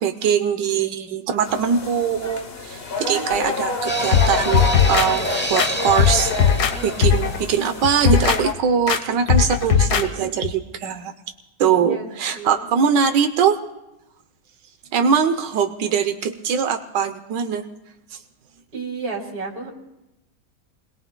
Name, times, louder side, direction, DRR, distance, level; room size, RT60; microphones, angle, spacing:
voice 1, 0.0-6.3 6.8-11.1 11.6-13.6 14.9-17.6 18.1-18.2, right 7 dB, 90° right, 7 dB, 1.5 m, -22 dB
sound 1, 1.4-8.5, left 3 dB, 40° left, 1.0 m, -28 dB
voice 2, 3.0-3.5 11.6-12.6 18.7-19.7, right 3 dB, 60° right, -1 dB, 3.2 m, -33 dB
sound 2, 3.9-9.0 9.2-9.3 9.6-9.7, right 1 dB, 10° left, 0.5 m, -30 dB
sound 3, 4.1-5.1 5.6-6.7 7.0-7.4 7.8-8.4 8.9-9.0 9.3-10.1 10.4-10.5, left 8 dB, 65° left, 1.5 m, -18 dB
29.5 x 21.0 x 2.2 m, 0.94 s
omnidirectional pair, 1.8 m